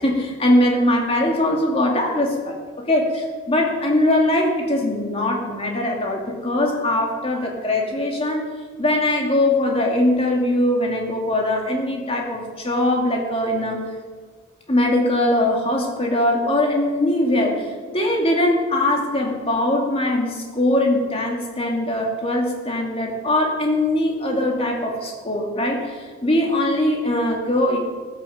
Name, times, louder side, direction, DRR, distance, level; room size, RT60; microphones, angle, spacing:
voice 1, 0.0-2.5 2.9-8.4 8.8-13.8 14.7-27.8, left 1 dB, 25° left, 0 dB, 2.4 m, -21 dB
15.0 x 10.0 x 7.1 m, 1.5 s
head